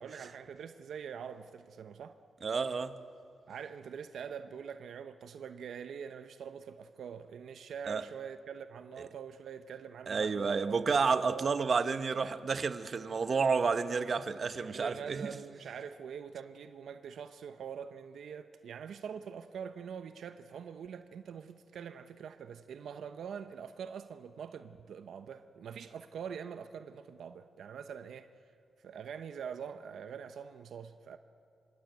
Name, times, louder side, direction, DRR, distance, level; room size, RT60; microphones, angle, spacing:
voice 1, 0.0-2.2 3.5-10.7 11.0-11.6 14.7-28.3 28.8-31.2, right 7 dB, 80° right, 0.8 m, -44 dB
voice 2, 2.4-2.9 7.9-8.0 10.1-15.3, right 5 dB, 50° right, 1.1 m, -30 dB
25.5 x 24.5 x 9.2 m
cardioid pair, 80°, 0 cm